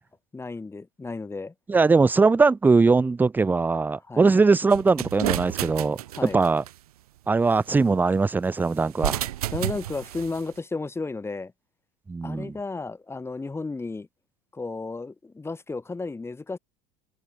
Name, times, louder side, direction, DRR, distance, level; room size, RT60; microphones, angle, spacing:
voice 1, 0.3-1.5 4.1-4.3 6.1-6.4 9.5-11.5 12.2-14.1 14.5-16.6, left 3 dB, 15° left, 1.6 m, -33 dB
voice 2, 1.7-6.6 7.3-9.3 12.1-12.6, right 4 dB, 10° right, 0.4 m, -21 dB
sound 1, 4.7-6.7 8.9-10.4, right 14 dB, 75° right, 1.8 m, -31 dB
hypercardioid pair, 75°, 19 cm